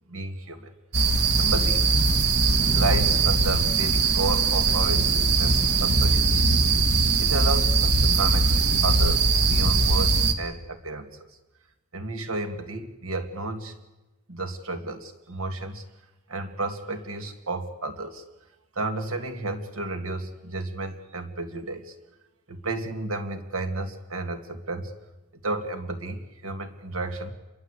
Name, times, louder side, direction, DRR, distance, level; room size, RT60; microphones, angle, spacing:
voice 1, 0.1-0.7 1.4-1.8 2.7-6.5 7.2-11.1 11.9-13.8 14.3-15.8 16.3-18.2 18.8-21.9 22.5-24.9 25.4-27.3, right 2 dB, 65° right, 7 dB, 2.4 m, -32 dB
sound 1, 0.9-10.3, right 3 dB, 50° right, 1.7 m, -21 dB
28.0 x 22.5 x 8.3 m, 1.1 s
head